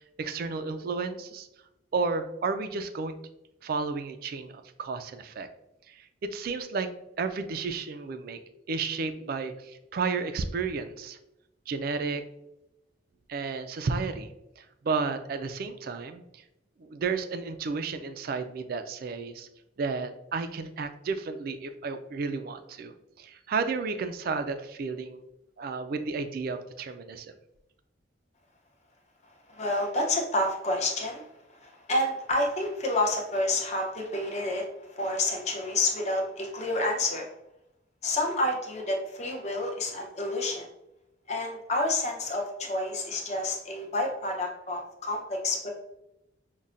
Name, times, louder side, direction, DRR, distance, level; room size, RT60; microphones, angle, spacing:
voice 1, 0.2-1.5 1.9-3.1 3.6-5.5 5.9-8.4 8.7-11.2 11.7-12.2 13.3-16.4 16.8-19.5 19.8-25.2 25.6-27.3, right 4 dB, 50° right, 9 dB, 0.3 m, -32 dB
voice 2, 29.5-31.3 31.6-37.3 38.0-40.7 41.3-45.7, left 2 dB, 35° left, 0 dB, 0.7 m, -29 dB
5.5 x 2.1 x 2.5 m, 0.88 s
head